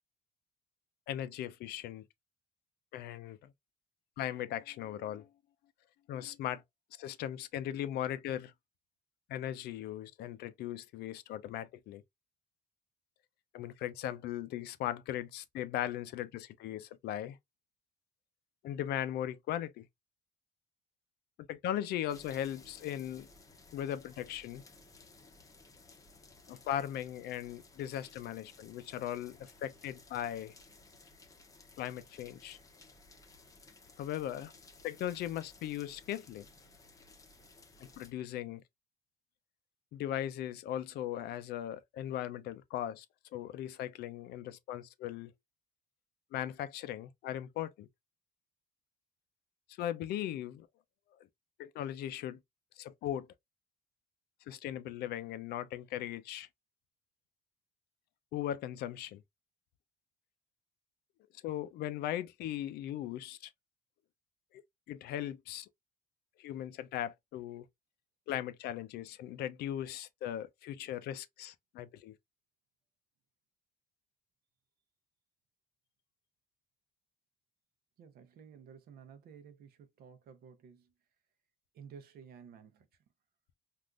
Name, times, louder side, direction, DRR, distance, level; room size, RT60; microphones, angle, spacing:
voice 1, 1.1-2.0 2.9-3.5 4.2-5.3 6.1-6.6 7.0-8.5 9.3-12.0 13.5-17.4 18.6-19.9 21.4-23.3 23.7-24.6 26.5-30.5 31.8-32.6 34.0-34.5 34.8-36.5 37.8-38.6 39.9-43.1 43.3-45.3 46.3-47.9 49.8-50.7 51.6-52.4 52.8-53.3 54.5-56.5 58.3-59.2 61.3-63.5 64.9-65.7 66.4-67.7 68.3-72.1, left 11 dB, 75° left, 0.5 m, -38 dB
sound 1, 22.1-38.1, left 3 dB, 20° left, 0.7 m, -58 dB
voice 2, 78.0-80.9 81.7-82.9, right 7 dB, 65° right, 0.7 m, -54 dB
3.5 x 2.5 x 2.4 m
cardioid pair, 110°, 17 cm